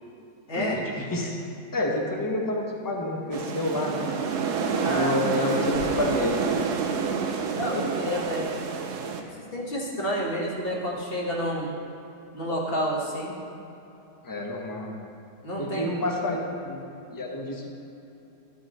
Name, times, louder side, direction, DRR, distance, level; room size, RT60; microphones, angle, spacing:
voice 1, 0.5-1.4 1.7-4.1 4.7-6.5 14.2-15.0 15.6-16.8 17.1-17.7, left 1 dB, 20° left, 0 dB, 0.6 m, -29 dB
sound 1, 3.3-9.2, right 6 dB, 75° right, 1.2 m, -28 dB
voice 2, 4.8-5.2 7.1-8.5 9.2-11.8 12.3-13.3 15.4-15.8, equal, 35° left, -3 dB, 1.5 m, -30 dB
12.5 x 5.7 x 4.3 m, 2.9 s
omnidirectional pair, 1.8 m